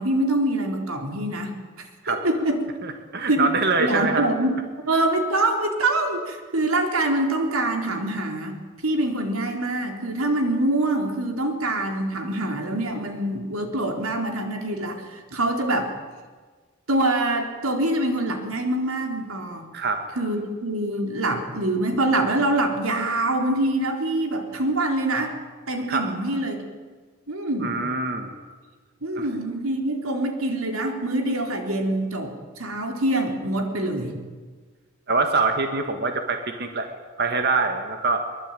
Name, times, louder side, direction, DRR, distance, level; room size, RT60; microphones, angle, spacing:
voice 1, 0.0-2.6 3.3-3.5 3.8-4.6 4.9-8.6 8.8-15.9 16.9-19.7 20.2-25.3 25.7-26.6 27.3-27.7 29.0-34.1, right 1 dB, 90° right, 4 dB, 3.9 m, -25 dB
voice 2, 2.8-4.3 19.7-20.0 25.9-26.1 27.6-28.3 29.2-29.3 35.1-36.9 37.2-38.3, right 3 dB, 50° right, 5 dB, 1.9 m, -24 dB
23.0 x 23.0 x 9.2 m, 1.4 s
head